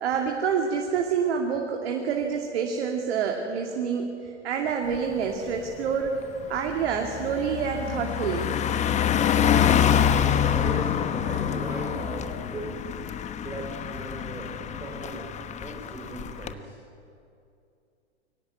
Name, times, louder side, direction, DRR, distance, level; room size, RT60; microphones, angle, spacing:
voice 1, 0.0-6.2 6.5-8.5, right 6 dB, 60° right, 2 dB, 2.6 m, -27 dB
Car passing by, 4.9-5.2 5.6-16.5, left 9 dB, 20° left, 1.1 m, -26 dB
voice 2, 10.4-12.7 13.4-15.3 15.6-16.7, right 1 dB, 10° right, -4 dB, 5.1 m, -37 dB
23.0 x 17.5 x 9.4 m, 2.5 s
hypercardioid pair, 110°, 35 cm